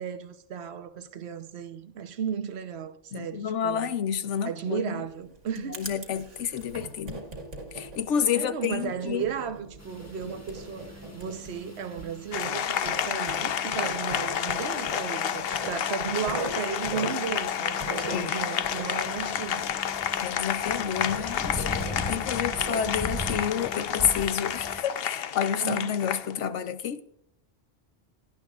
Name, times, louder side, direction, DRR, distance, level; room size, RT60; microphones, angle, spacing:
voice 1, 0.0-3.9 4.4-5.8 8.3-19.6 25.6-25.9, right 7 dB, 60° right, 1.2 m, -34 dB
voice 2, 3.1-5.0 5.7-7.2 7.7-9.2 18.1-18.3 20.2-27.0, left 8 dB, 75° left, 1.1 m, -29 dB
Writing, 5.0-20.4 20.6-23.2, right 2 dB, 85° right, 2.2 m, -41 dB
sound 1, 9.8-24.8, left 1 dB, 15° left, 1.4 m, -41 dB
Applause, 12.3-26.3, left 9 dB, 60° left, 0.8 m, -30 dB
18.0 x 11.0 x 2.4 m
omnidirectional pair, 1.2 m